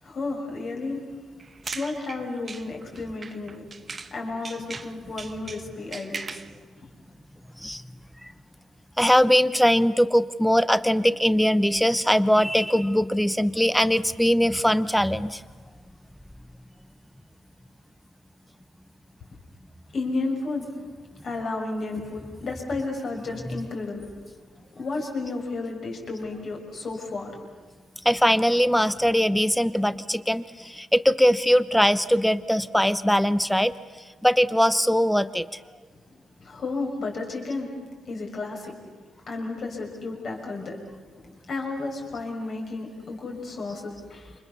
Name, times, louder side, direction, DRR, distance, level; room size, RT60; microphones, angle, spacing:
voice 1, 0.0-1.0 1.7-3.7 4.1-6.4 19.9-20.7 21.2-24.1 24.8-27.4 36.4-37.7 38.1-38.7 39.3-40.8 41.1-44.3, left 3 dB, 45° left, 1 dB, 6.7 m, -32 dB
sound 1, 1.4-4.2 4.4-6.5, right 4 dB, 25° right, 1.1 m, -39 dB
voice 2, 9.0-15.4 28.0-30.4 30.7-33.7 34.2-35.5, equal, ahead, 15 dB, 0.8 m, -21 dB
29.5 x 27.5 x 7.1 m, 1.4 s
cardioid pair, 155°, 0 cm